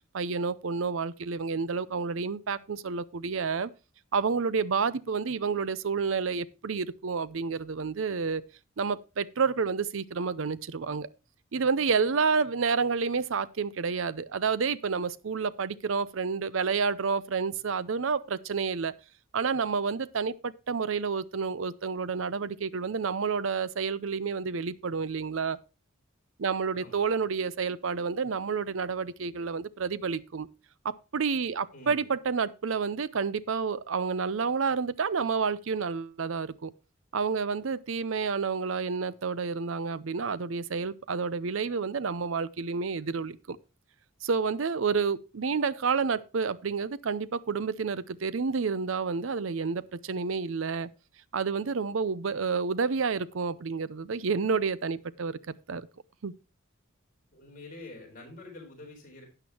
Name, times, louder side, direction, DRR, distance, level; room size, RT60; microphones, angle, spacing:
voice 1, 0.1-3.7 4.1-8.4 8.8-11.1 11.5-18.9 19.3-25.6 26.4-30.5 30.8-36.7 37.1-43.6 44.2-50.9 51.3-55.4 55.7-55.9 56.2-56.3, right 5 dB, 70° right, 0.6 m, -29 dB
voice 2, 26.7-27.2 31.7-32.1 57.3-59.2, left 2 dB, 40° left, 4.2 m, -47 dB
12.5 x 8.9 x 2.9 m
head